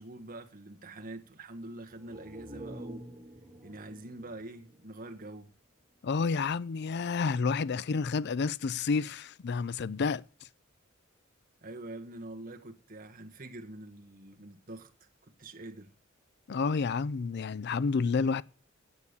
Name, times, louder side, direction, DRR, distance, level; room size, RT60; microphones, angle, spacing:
voice 1, 0.0-3.0 3.6-5.5 11.6-15.9, right 2 dB, 45° right, 1.5 m, -45 dB
sound 1, 1.8-5.6 5.9-6.0, right 1 dB, 15° right, 3.4 m, -48 dB
voice 2, 6.0-10.2 16.5-18.4, left 4 dB, 55° left, 0.4 m, -30 dB
9.7 x 7.0 x 8.3 m
head